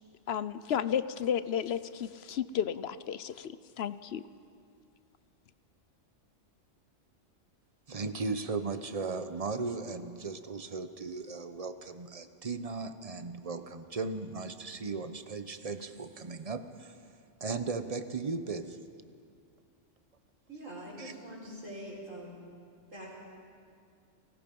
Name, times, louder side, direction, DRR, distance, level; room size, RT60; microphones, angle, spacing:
voice 1, 0.3-3.5 3.8-4.2, left 9 dB, 60° left, 15 dB, 0.9 m, -32 dB
voice 2, 7.9-17.0 17.4-18.8 21.0-21.1, right 4 dB, 30° right, 10 dB, 0.9 m, -37 dB
voice 3, 20.5-22.4 22.9-23.2, right 1 dB, 90° right, -3 dB, 5.1 m, -44 dB
30.0 x 19.0 x 5.4 m, 2.3 s
omnidirectional pair, 1.3 m